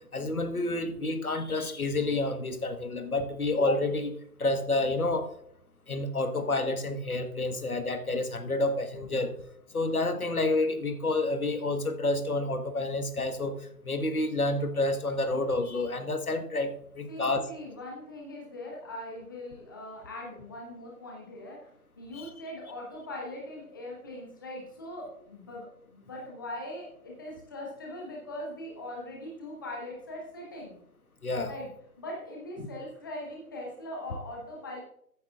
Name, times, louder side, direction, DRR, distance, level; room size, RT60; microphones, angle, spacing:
voice 1, 0.1-5.3 5.9-9.3 9.7-17.4 22.1-22.3 31.2-31.5, left 2 dB, 65° left, 8 dB, 1.4 m, -29 dB
voice 2, 17.1-21.7 22.0-30.8 31.4-31.7 32.0-34.8, left 1 dB, 15° left, -2 dB, 1.0 m, -41 dB
14.5 x 9.3 x 2.4 m, 0.71 s
figure-of-eight pair, 150°, 47 cm